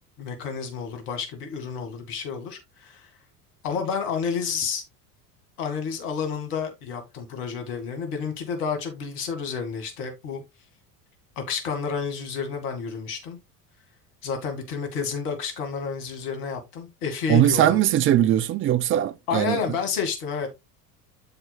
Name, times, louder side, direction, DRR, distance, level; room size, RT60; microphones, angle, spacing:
voice 1, 0.2-3.1 3.6-4.8 5.6-10.4 11.4-13.4 14.2-17.8 19.3-20.5, left 6 dB, 65° left, 2.2 m, -30 dB
voice 2, 17.3-19.6, right 12 dB, 25° right, 0.4 m, -20 dB
12.5 x 4.5 x 2.3 m
figure-of-eight pair, 70°, 48 cm